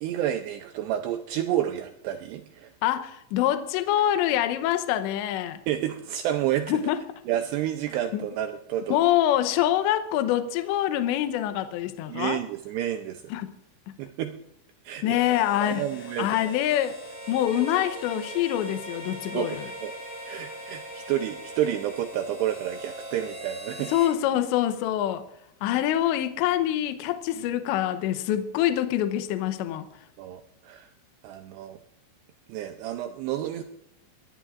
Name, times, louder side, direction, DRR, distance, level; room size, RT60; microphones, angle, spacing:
voice 1, 0.0-2.7 5.7-6.8 7.3-9.0 12.1-13.2 14.0-14.4 14.8-15.2 15.6-16.4 19.3-19.9 20.3-23.9 25.7-25.8 27.4-27.5 30.2-30.9 31.2-31.8 32.5-33.6, right 11 dB, 85° right, 2.4 m, -30 dB
voice 2, 2.8-5.6 6.7-7.0 8.1-8.2 8.9-12.4 13.3-13.5 15.0-15.8 16.2-17.0 17.3-19.7 23.9-25.2 25.6-29.9, left 12 dB, 75° left, 2.9 m, -25 dB
Harmonica, 15.1-24.2, equal, 15° right, 6.7 m, -42 dB
Bowed string instrument, 17.0-22.2, right 1 dB, 35° right, 7.4 m, -42 dB
23.5 x 18.5 x 2.5 m
omnidirectional pair, 5.6 m